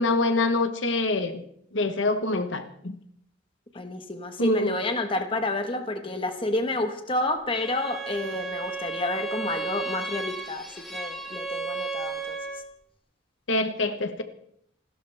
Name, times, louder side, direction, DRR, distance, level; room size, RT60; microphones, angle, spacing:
voice 1, 0.0-1.4 1.7-2.9 4.4-4.8 13.5-14.2, left 2 dB, 75° left, 8 dB, 1.3 m, -25 dB
voice 2, 3.7-12.4, left 2 dB, 25° left, 6 dB, 1.4 m, -29 dB
Bowed string instrument, 7.5-12.7, right 3 dB, ahead, 2.4 m, -34 dB
28.0 x 12.5 x 3.5 m, 0.69 s
head